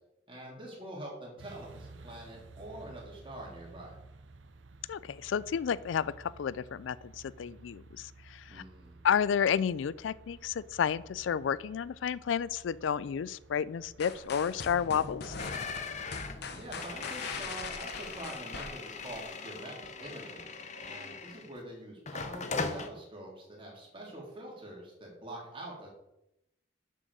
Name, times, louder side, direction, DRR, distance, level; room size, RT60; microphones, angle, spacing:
voice 1, 0.3-4.0 8.5-9.0 16.3-25.9, right 1 dB, 30° right, -3 dB, 3.6 m, -45 dB
sound 1, 1.4-18.3, right 3 dB, 90° right, 0.7 m, -54 dB
voice 2, 4.9-8.6 9.0-15.4, left 7 dB, 90° left, 19 dB, 0.4 m, -31 dB
sound 2, 14.0-19.3, left 4 dB, 60° left, 1.0 m, -41 dB
sound 3, 15.4-21.6 22.1-22.9, left 4 dB, 40° left, 0.8 m, -40 dB
7.5 x 6.3 x 6.8 m, 0.85 s
head